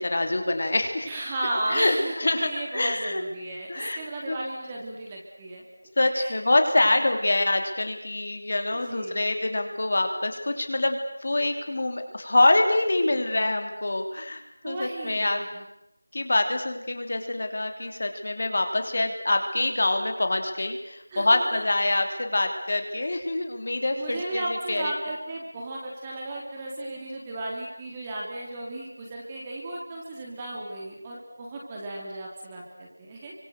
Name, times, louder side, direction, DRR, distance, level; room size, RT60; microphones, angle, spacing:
voice 1, 0.0-1.1 1.7-3.2 3.7-4.0 4.3-4.4 6.0-15.4 16.1-24.9, left 2 dB, 45° left, 5 dB, 3.3 m, -25 dB
voice 2, 1.0-5.6 6.1-6.4 8.7-9.3 14.6-15.6 21.1-21.6 24.0-33.3, right 1 dB, 15° right, -2 dB, 3.6 m, -35 dB
30.0 x 25.0 x 6.7 m, 0.84 s
figure-of-eight pair, 175°, 0 cm